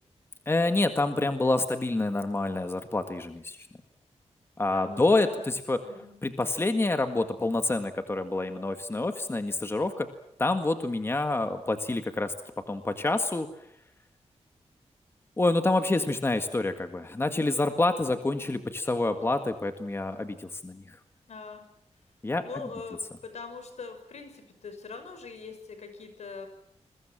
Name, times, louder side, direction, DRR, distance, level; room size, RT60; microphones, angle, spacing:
voice 1, 0.5-3.6 4.6-5.8 6.2-10.1 10.4-12.3 12.7-13.5 15.4-21.0 22.2-22.7, left 2 dB, 20° left, 7 dB, 1.8 m, -27 dB
voice 2, 4.7-5.5 5.8-6.2 21.3-21.6 22.4-26.5, left 4 dB, 75° left, 8 dB, 6.0 m, -42 dB
29.0 x 22.5 x 7.5 m, 0.70 s
wide cardioid pair, 140°, 11 cm